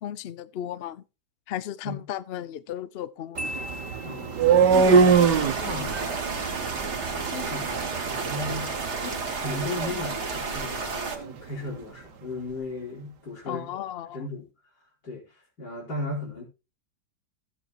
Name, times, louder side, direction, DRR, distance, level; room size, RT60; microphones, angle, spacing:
voice 1, 0.0-1.0 1.5-3.7 13.5-14.2, left 11 dB, 65° left, 0.6 m, -35 dB
Marimba xylophone, 3.4-4.8, left 1 dB, 10° right, 0.9 m, -38 dB
sound 1, 3.4-11.3, right 5 dB, 90° right, 1.7 m, -24 dB
voice 2, 4.0-6.2 7.3-8.7 9.0-13.7 14.1-14.4 15.0-15.2 15.6-16.4, left 2 dB, 80° left, 4.8 m, -36 dB
sound 2, 4.7-11.2, right 4 dB, 45° right, 1.9 m, -32 dB
14.5 x 8.1 x 2.9 m
omnidirectional pair, 1.8 m